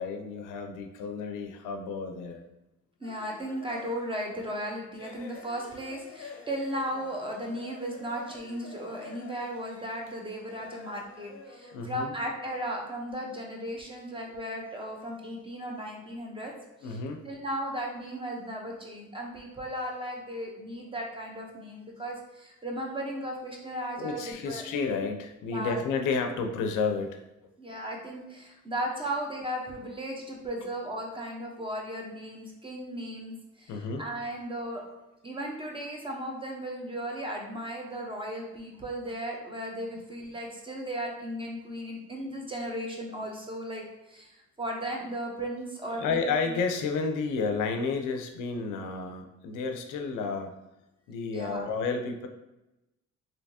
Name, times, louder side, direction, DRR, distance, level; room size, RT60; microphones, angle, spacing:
voice 1, 0.0-2.5 11.7-12.1 16.8-17.2 24.0-27.2 33.7-34.0 45.8-50.5 51.1-52.3, left 4 dB, 90° left, 5 dB, 0.5 m, -31 dB
sound 1, 3.0-4.5 4.9-11.8, left 4 dB, 50° left, 0.6 m, -48 dB
voice 2, 3.0-16.5 16.8-17.0 17.2-24.6 25.5-25.8 27.6-34.8 35.2-46.6 51.3-51.7, right 1 dB, 15° right, 0 dB, 0.8 m, -36 dB
3.4 x 2.8 x 2.7 m, 0.99 s
cardioid pair, 90°, 30 cm